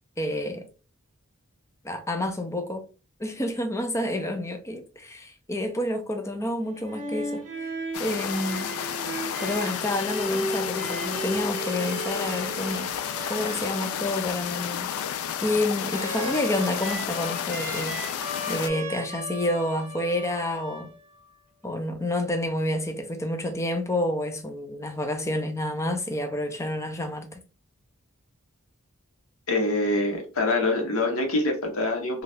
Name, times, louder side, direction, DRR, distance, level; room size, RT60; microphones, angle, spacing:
voice 1, 0.2-0.7 1.8-2.8 3.2-7.7 8.0-8.7 9.4-12.9 13.3-14.9 15.4-17.9 18.5-20.9 21.6-27.4, left 1 dB, 15° left, 0.5 m, -29 dB
sound 1, 6.6-21.3, right 1 dB, 35° right, 0.9 m, -36 dB
sound 2, 7.9-18.7, left 9 dB, 85° left, 0.3 m, -32 dB
voice 2, 29.5-32.2, left 2 dB, 70° left, 1.0 m, -25 dB
2.7 x 2.4 x 3.3 m
head